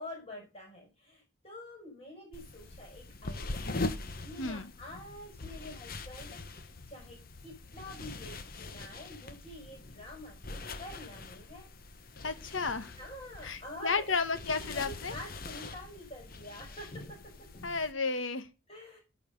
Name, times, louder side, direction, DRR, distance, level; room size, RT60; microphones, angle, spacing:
voice 1, 0.0-3.7 3.9-11.7 13.0-17.5 18.7-19.0, left 1 dB, 30° left, 0 dB, 5.9 m, -47 dB
sound 1, 2.3-17.9, left 2 dB, 50° left, 1.1 m, -42 dB
voice 2, 12.2-12.9 13.4-15.1 17.6-18.5, left 4 dB, 80° left, 11 dB, 1.3 m, -32 dB
14.0 x 5.2 x 5.2 m, 0.28 s
head